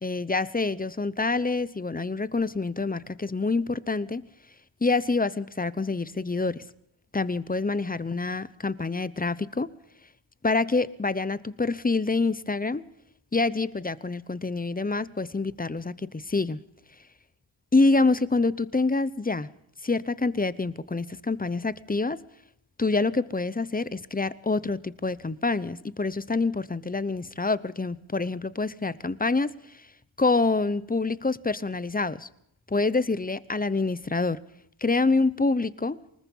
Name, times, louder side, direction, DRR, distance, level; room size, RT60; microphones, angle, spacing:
voice 1, 0.0-4.3 4.8-6.6 7.1-9.7 10.4-12.9 13.3-16.6 17.7-19.5 19.8-22.2 22.8-29.9 30.2-32.3 32.7-34.4 34.8-36.0, left 3 dB, 20° left, 0.8 m, -26 dB
24.0 x 20.5 x 5.5 m
wide cardioid pair, 125°, 48 cm